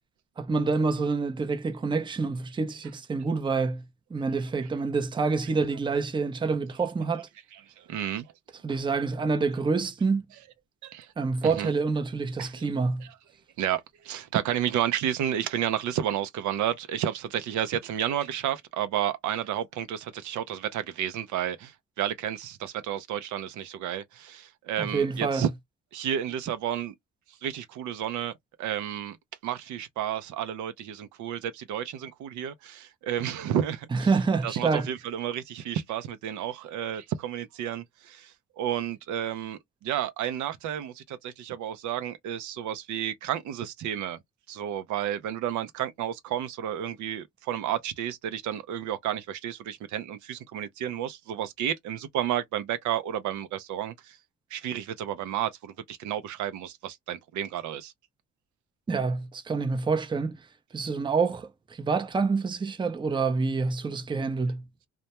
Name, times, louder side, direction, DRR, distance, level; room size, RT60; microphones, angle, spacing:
voice 1, 0.4-3.8 4.1-7.3 8.6-10.3 11.2-13.1 24.8-25.4 33.9-34.9 58.9-60.4 60.7-64.6, right 4 dB, 15° right, 0.5 m, -27 dB
voice 2, 7.5-8.3 10.8-11.1 11.4-11.7 12.4-12.7 13.0-13.1 13.6-25.5 25.9-26.9 27.3-28.3 28.6-29.2 29.4-34.1 34.4-44.2 44.5-54.2 54.5-57.9, right 10 dB, 75° right, 0.5 m, -31 dB
2.2 x 2.1 x 2.8 m
cardioid pair, 90°, 30 cm